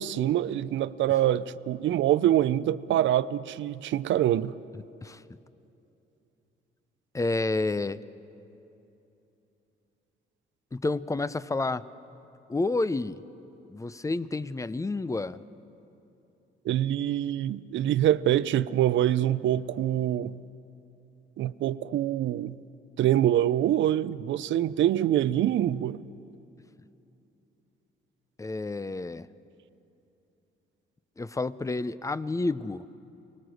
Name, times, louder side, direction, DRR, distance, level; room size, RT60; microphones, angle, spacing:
voice 1, 0.0-4.5 16.6-20.4 21.4-22.6 23.0-26.0, right 12 dB, 70° right, 0.6 m, -25 dB
voice 2, 7.1-8.0 10.7-11.8 12.5-13.2 13.7-15.4 28.4-29.3 31.2-32.9, left 3 dB, 15° left, 0.6 m, -29 dB
24.5 x 19.5 x 6.4 m
cardioid pair, 90°, 20 cm